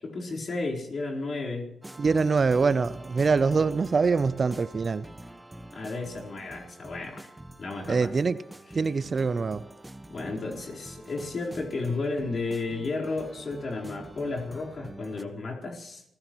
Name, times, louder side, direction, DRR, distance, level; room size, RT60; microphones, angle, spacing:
voice 1, 0.0-1.7 5.7-7.3 7.6-8.1 10.1-16.0, left 3 dB, 55° left, -2 dB, 4.3 m, -33 dB
sound 1, 1.8-15.2, right 1 dB, 15° right, 1.3 m, -45 dB
voice 2, 2.0-5.1 7.9-8.4 8.7-9.6, right 4 dB, 50° right, 16 dB, 0.6 m, -24 dB
28.5 x 15.5 x 3.1 m, 0.77 s
supercardioid pair, 50°, 0 cm